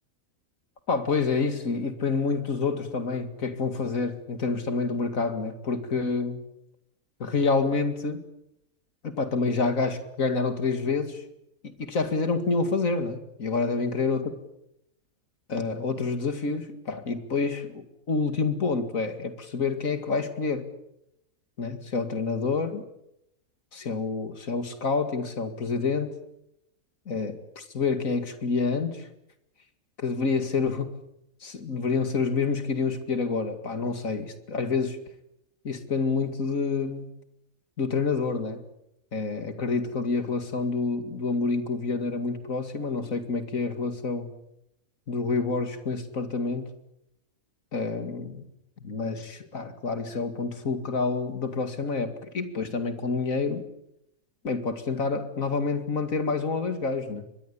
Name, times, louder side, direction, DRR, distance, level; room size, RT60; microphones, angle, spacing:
voice 1, 0.9-6.4 7.2-8.2 9.0-11.2 11.6-14.3 15.5-20.7 21.6-22.8 23.7-26.2 27.1-29.1 30.0-30.9 31.4-35.0 35.6-37.1 37.8-38.6 39.1-44.3 45.1-46.7 47.7-48.4 48.8-53.6 54.4-57.3, left 4 dB, 65° left, 9 dB, 2.6 m, -28 dB
24.0 x 21.5 x 8.5 m, 0.81 s
omnidirectional pair, 1.5 m